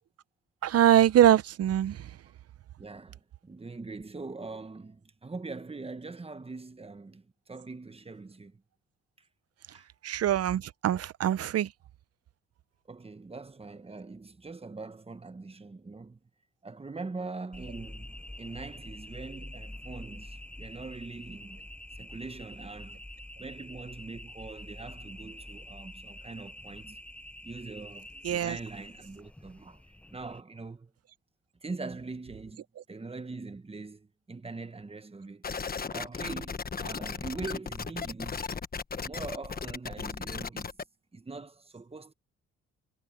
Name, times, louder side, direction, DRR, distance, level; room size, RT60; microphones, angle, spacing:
voice 1, 0.6-2.2 10.0-11.7 28.2-28.6, right 11 dB, 55° right, 0.7 m, -23 dB
voice 2, 2.8-8.6 9.7-9.9 12.9-16.2 16.6-21.6 22.0-23.0 23.4-27.0 27.4-29.8 30.1-30.9 31.6-35.4 35.9-38.4 39.0-40.7 41.1-42.1, right 3 dB, 20° right, 1.2 m, -42 dB
sound 1, 17.5-30.4, left 1 dB, 5° left, 0.6 m, -46 dB
sound 2, 35.4-40.8, left 5 dB, 30° left, 1.2 m, -36 dB
cardioid pair, 90°, 30 cm